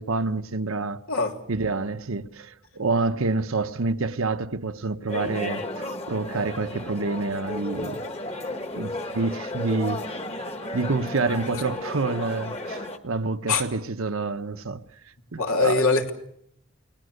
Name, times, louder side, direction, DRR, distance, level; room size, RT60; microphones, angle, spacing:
voice 1, 0.0-1.0 1.5-5.6 6.1-8.0 8.7-10.0 10.7-14.8 15.3-15.9, right 3 dB, 80° right, 1.0 m, -27 dB
sound 1, 5.1-13.0, left 1 dB, 30° left, 1.5 m, -33 dB
voice 2, 15.4-16.1, left 4 dB, 90° left, 3.1 m, -22 dB
28.5 x 19.5 x 6.6 m
head